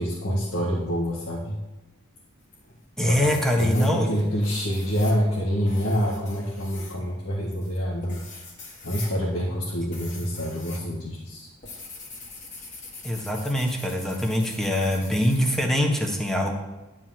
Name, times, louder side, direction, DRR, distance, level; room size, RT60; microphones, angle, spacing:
voice 1, 0.0-1.6 3.0-8.2 8.8-11.5, equal, 85° left, -4 dB, 1.7 m, -26 dB
sound 1, 2.4-2.9 3.2-10.9 11.1-15.7, left 3 dB, 35° left, 2.2 m, -43 dB
voice 2, 3.0-4.1 13.0-16.6, left 1 dB, ahead, 1 dB, 1.3 m, -23 dB
11.5 x 5.0 x 7.6 m, 1.1 s
head